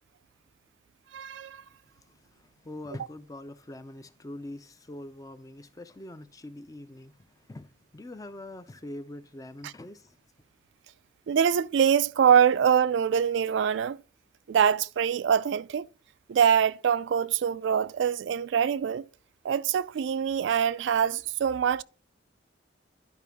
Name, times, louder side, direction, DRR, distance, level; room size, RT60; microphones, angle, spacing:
voice 1, 1.1-1.6 11.3-14.0 14.5-15.9 16.3-19.1 19.4-21.8, right 8 dB, 70° right, 0.3 m, -24 dB
voice 2, 1.7-10.2, left 1 dB, 15° left, 0.4 m, -44 dB
10.5 x 5.0 x 3.5 m
head